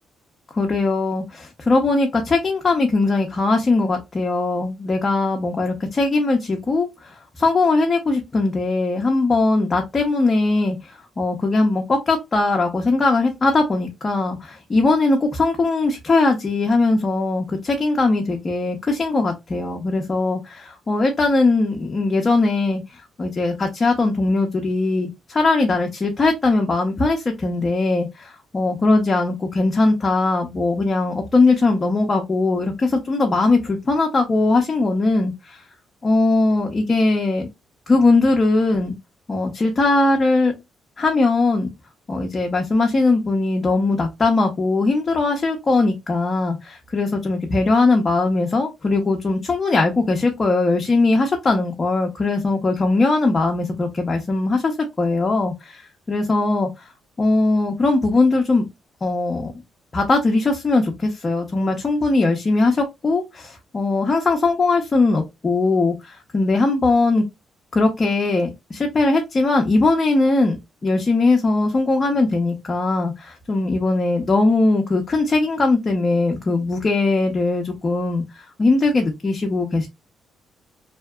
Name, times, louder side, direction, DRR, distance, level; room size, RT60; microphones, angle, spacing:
voice 1, 0.5-35.6 36.0-37.5 37.9-38.9 39.3-40.5 41.0-41.7 42.1-55.8 56.1-56.9 57.2-58.7 59.0-59.5 59.9-67.2 67.7-70.6 70.8-79.9, left 3 dB, 30° left, 0.6 m, -20 dB
2.7 x 2.2 x 2.3 m
cardioid pair, 90°, 0 cm